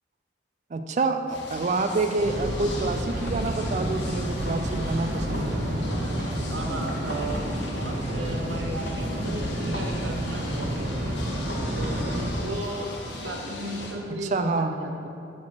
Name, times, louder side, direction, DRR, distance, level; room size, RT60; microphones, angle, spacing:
voice 1, 0.7-5.6 14.1-14.7, right 3 dB, 40° right, 7 dB, 0.3 m, -27 dB
sound 1, 1.3-14.0, left 2 dB, 65° left, 0.7 m, -39 dB
sound 2, 2.2-12.3, right 1 dB, 55° right, 0.8 m, -30 dB
voice 2, 6.5-7.4 7.7-10.9 11.7-12.9 13.2-15.1, right 1 dB, 85° right, 2 dB, 0.8 m, -35 dB
7.3 x 4.4 x 4.4 m, 2.5 s
head